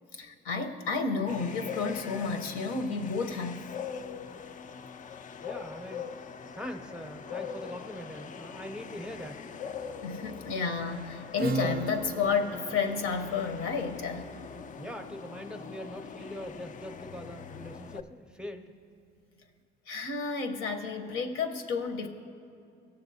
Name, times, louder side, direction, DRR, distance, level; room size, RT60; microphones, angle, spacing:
voice 1, 0.2-3.6 10.0-14.3 19.9-22.1, left 5 dB, 80° left, 5 dB, 0.9 m, -31 dB
sound 1, 1.3-18.0, left 6 dB, 40° left, 0.4 m, -42 dB
voice 2, 5.4-6.0 6.5-9.4 14.8-18.7, equal, 5° right, 5 dB, 0.6 m, -42 dB
Acoustic guitar / Strum, 11.4-16.8, right 4 dB, 50° right, 0.4 m, -38 dB
17.5 x 7.0 x 2.7 m, 2.5 s
cardioid pair, 95°, 21 cm